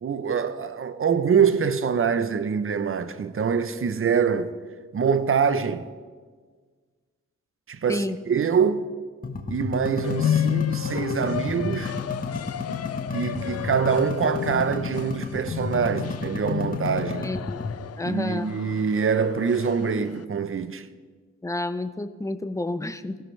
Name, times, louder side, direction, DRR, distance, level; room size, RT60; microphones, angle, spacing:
voice 1, 0.0-4.5 4.9-5.9 7.7-8.9 9.5-12.0 13.1-17.3 18.0-20.9, right 6 dB, 45° right, 0.7 m, -24 dB
sound 1, 9.2-17.7, left 4 dB, 30° left, 1.2 m, -33 dB
sound 2, 10.0-20.2, left 10 dB, 55° left, 0.5 m, -31 dB
voice 2, 17.2-17.6 18.0-18.5 21.4-23.2, left 2 dB, 10° left, 0.6 m, -30 dB
18.5 x 15.5 x 3.3 m
wide cardioid pair, 115°, 30 cm